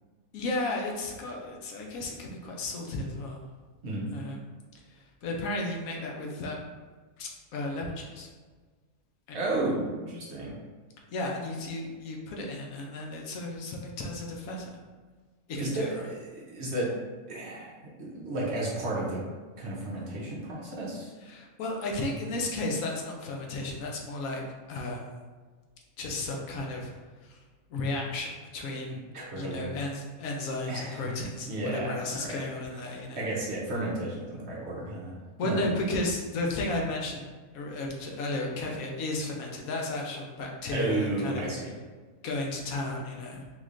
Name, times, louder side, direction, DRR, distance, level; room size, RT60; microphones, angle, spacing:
voice 1, 0.3-3.5 4.1-4.4 4.9-6.6 7.2-8.3 9.3-9.4 11.1-14.7 15.5-16.0 21.3-24.4 24.7-25.0 26.0-26.9 27.2-27.4 27.7-29.0 29.3-33.2 35.4-37.3 37.5-41.5 42.2-43.4, left 2 dB, 80° left, 0 dB, 1.1 m, -33 dB
voice 2, 9.3-10.5 15.6-16.9 17.3-19.2 19.6-21.1 29.1-29.7 30.7-32.4 32.9-35.1 35.4-35.6 40.7-41.7, right 2 dB, 55° right, -5 dB, 0.9 m, -33 dB
3.5 x 3.1 x 2.5 m, 1.4 s
omnidirectional pair, 1.5 m